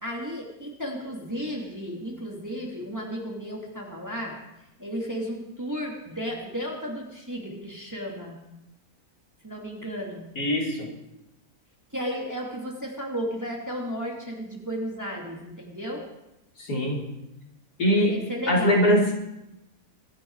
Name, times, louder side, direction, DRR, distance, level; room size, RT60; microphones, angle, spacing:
voice 1, 0.0-4.4 4.8-8.4 9.4-10.3 11.9-16.0 17.9-18.9, equal, 10° right, -2 dB, 2.8 m, -34 dB
voice 2, 10.3-10.9 16.6-17.0 17.8-18.1 18.5-19.1, equal, 80° left, -2 dB, 4.5 m, -22 dB
25.0 x 10.0 x 4.8 m, 0.91 s
omnidirectional pair, 1.6 m